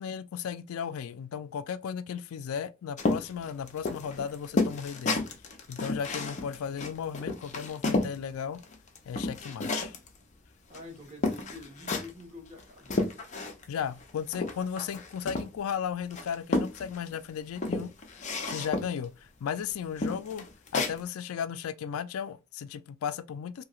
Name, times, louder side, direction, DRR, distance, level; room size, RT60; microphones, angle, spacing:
voice 1, 0.0-5.2 5.7-8.6 9.1-9.9 13.7-20.5 20.7-23.6, left 7 dB, 90° left, 0.4 m, -35 dB
sound 1, 3.0-8.2 8.6-10.1 10.7-10.8 11.2-12.2 12.6-13.8 14.0-15.7 16.1-17.1 17.6-19.0 19.5-19.6 20.0-21.0, left 2 dB, 35° left, 0.6 m, -31 dB
voice 2, 10.7-13.1, left 2 dB, 30° right, 1.5 m, -47 dB
3.0 x 2.8 x 2.3 m
head